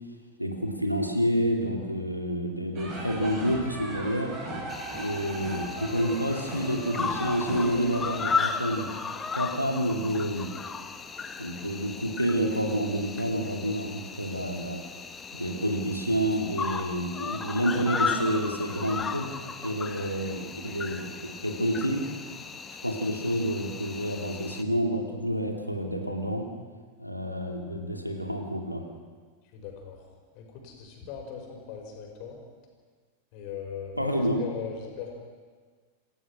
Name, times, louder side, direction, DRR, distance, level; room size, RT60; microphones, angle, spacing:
voice 1, 0.4-4.3 4.9-8.9 9.3-10.5 11.4-14.8 15.3-19.3 19.6-22.0 22.8-26.4 27.0-28.8 34.0-34.4, equal, 90° right, 3 dB, 2.4 m, -29 dB
sound 1, 2.7-8.4, right 1 dB, 30° right, 6.1 m, -38 dB
Cricket, 4.7-24.6, left 5 dB, 15° left, 1.2 m, -35 dB
voice 2, 29.5-30.0 30.3-32.4 33.3-35.1, left 7 dB, 45° left, 2 dB, 5.2 m, -39 dB
27.5 x 15.5 x 6.1 m, 1.5 s
figure-of-eight pair, 90°, 0 cm